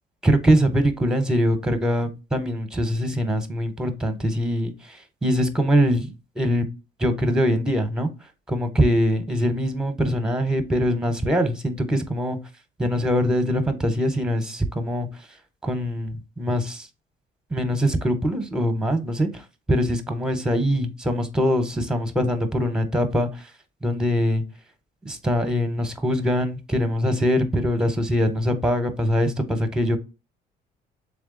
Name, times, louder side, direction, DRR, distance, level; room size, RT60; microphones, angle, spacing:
voice 1, 0.2-6.7 7.0-8.1 8.5-12.4 12.8-15.1 15.6-16.9 17.5-19.4 19.7-23.3 23.8-24.4 25.1-30.0, equal, 5° right, 0.7 m, -23 dB
3.5 x 3.2 x 3.7 m
cardioid pair, 110°, 17 cm